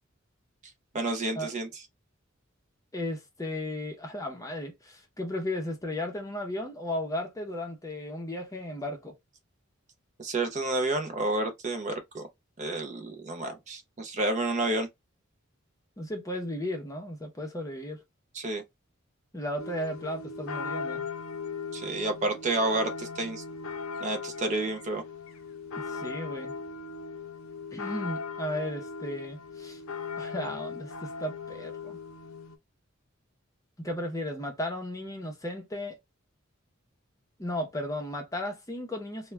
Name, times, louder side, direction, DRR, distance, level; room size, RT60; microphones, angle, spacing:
voice 1, 0.9-1.7 10.2-12.3 12.6-14.9 18.3-18.6 21.7-23.4 24.0-25.0, right 2 dB, 35° right, 0.5 m, -30 dB
voice 2, 2.9-9.1 16.0-18.0 19.3-21.1 25.9-26.5 27.7-29.8 30.2-32.0 33.8-36.0 37.4-39.3, left 1 dB, 15° left, 0.6 m, -35 dB
sound 1, 19.6-32.6, left 4 dB, 85° left, 0.5 m, -38 dB
2.2 x 2.1 x 3.1 m
head